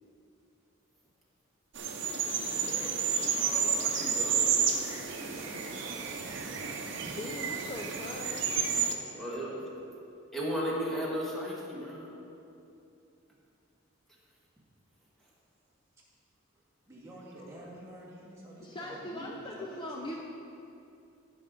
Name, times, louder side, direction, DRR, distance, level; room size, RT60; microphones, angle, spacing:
sound 1, 1.7-8.9, right 6 dB, 60° right, 0.8 m, -31 dB
voice 1, 2.2-3.7 5.1-6.6 16.9-20.2, equal, 15° right, -7 dB, 1.9 m, -48 dB
voice 2, 3.2-4.7 6.6-6.7 9.2-9.6 10.3-12.1 17.4-17.6, equal, ahead, -6 dB, 1.6 m, -36 dB
voice 3, 7.0-8.4 9.1-9.3 18.6-20.2, left 1 dB, 25° left, -1 dB, 0.5 m, -40 dB
15.0 x 5.3 x 3.8 m, 2.7 s
head